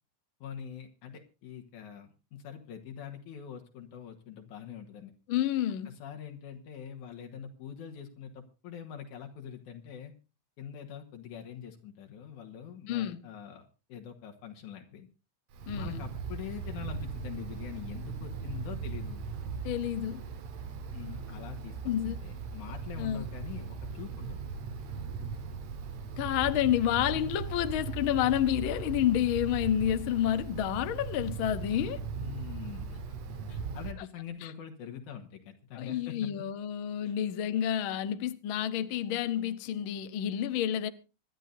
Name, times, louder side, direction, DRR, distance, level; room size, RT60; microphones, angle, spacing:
voice 1, 0.4-5.1 5.9-10.1 10.6-15.1 15.7-19.2 20.9-24.4 32.2-33.2 33.5-36.3 37.0-37.1, left 8 dB, 85° left, 2.9 m, -44 dB
voice 2, 5.3-5.9 12.9-13.2 15.7-16.1 19.6-20.2 21.8-22.2 23.0-23.2 26.2-32.0 35.8-40.9, left 11 dB, 65° left, 1.3 m, -29 dB
Wind, 15.5-33.9, right 5 dB, 70° right, 2.5 m, -38 dB
25.5 x 11.0 x 2.6 m
omnidirectional pair, 3.4 m